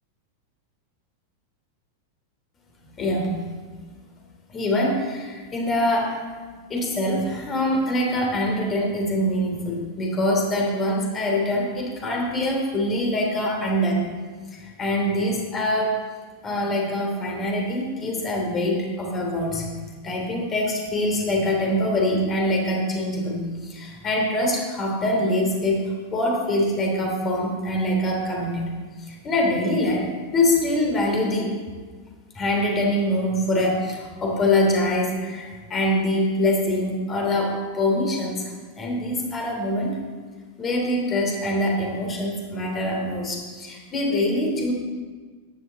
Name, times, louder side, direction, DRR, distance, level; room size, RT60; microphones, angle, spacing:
voice 1, 3.0-3.4 4.5-6.2 6.7-14.1 14.5-16.0 16.4-19.7 20.0-28.6 29.0-30.1 30.3-31.5 32.3-40.0 40.6-44.7, left 1 dB, 25° left, 0 dB, 3.2 m, -24 dB
14.0 x 10.5 x 4.2 m, 1.4 s
figure-of-eight pair, 90°, 0 cm